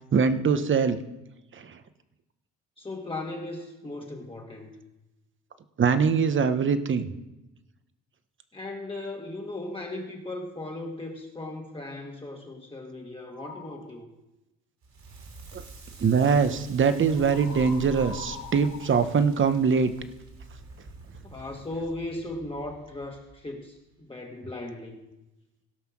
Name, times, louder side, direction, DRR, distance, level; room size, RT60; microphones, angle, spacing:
voice 1, 0.1-1.0 1.5-1.8 5.8-7.1 15.5-15.6 16.0-19.9, right 6 dB, 40° right, 11 dB, 0.9 m, -23 dB
voice 2, 2.8-4.8 8.5-14.1 21.2-25.1, left 2 dB, 20° left, 0 dB, 1.5 m, -37 dB
sound 1, 13.3-13.9 17.1-19.9, left 4 dB, 70° left, 2.0 m, -43 dB
Crackle, 14.8-23.8, right 3 dB, 65° right, 3.0 m, -46 dB
17.0 x 5.6 x 6.0 m, 0.98 s
cardioid pair, 90°, 30 cm